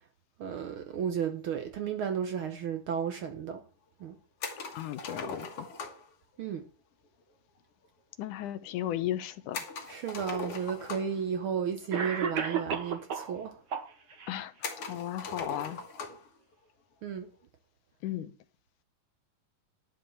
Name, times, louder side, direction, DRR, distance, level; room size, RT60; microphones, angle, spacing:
voice 1, 0.4-3.6 4.0-4.2 6.4-6.7 9.9-13.6 17.0-17.3, right 7 dB, 75° right, 1.2 m, -33 dB
sound 1, 4.4-6.1 9.5-11.3 12.3-12.4 12.7-12.8 13.6-13.7 14.6-16.3, left 4 dB, 55° left, 2.2 m, -40 dB
voice 2, 4.7-5.7 8.2-9.6 14.3-15.8 18.0-18.3, left 12 dB, 80° left, 2.3 m, -35 dB
Cough, 10.2-10.3 11.3-11.4 11.9-13.3 13.7-14.3, right 6 dB, 50° right, 1.3 m, -32 dB
11.5 x 4.8 x 7.8 m
omnidirectional pair, 3.6 m